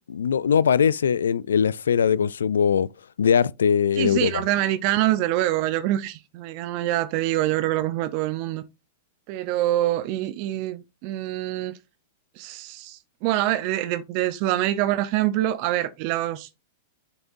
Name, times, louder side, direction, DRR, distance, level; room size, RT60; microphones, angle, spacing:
voice 1, 0.1-2.9 3.2-4.4, left 7 dB, 80° left, 0.3 m, -21 dB
voice 2, 4.0-8.6 9.3-11.7 12.4-16.5, right 14 dB, 50° right, 0.7 m, -25 dB
7.0 x 7.0 x 2.6 m
hypercardioid pair, 105°, 0 cm